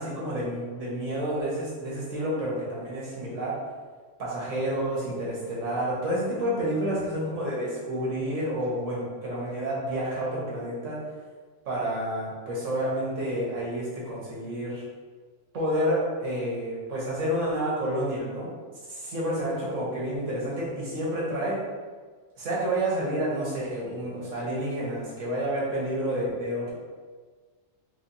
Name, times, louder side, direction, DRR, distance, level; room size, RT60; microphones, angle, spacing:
voice 1, 0.0-3.6 4.2-11.0 11.7-14.8 15.5-18.5 18.9-21.6 22.4-26.7, right 1 dB, 70° right, -6 dB, 1.3 m, -29 dB
3.2 x 3.1 x 2.7 m, 1.5 s
omnidirectional pair, 1.3 m